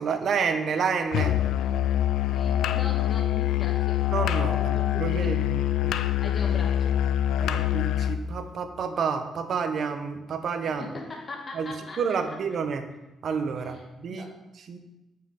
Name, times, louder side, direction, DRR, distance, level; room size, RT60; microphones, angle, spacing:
voice 1, 0.0-1.3 4.1-6.0 7.4-10.8 11.5-12.9 13.2-14.3 14.7-14.8, right 6 dB, 60° right, 8 dB, 0.8 m, -29 dB
Musical instrument, 1.1-8.2, left 11 dB, 85° left, 0.4 m, -25 dB
voice 2, 2.3-4.0 4.5-5.3 6.2-7.0 10.7-12.2 13.6-13.8 14.1-14.3, left 2 dB, 35° left, 0 dB, 1.3 m, -40 dB
8.5 x 5.7 x 3.7 m, 1.0 s
cardioid pair, 90°, 0 cm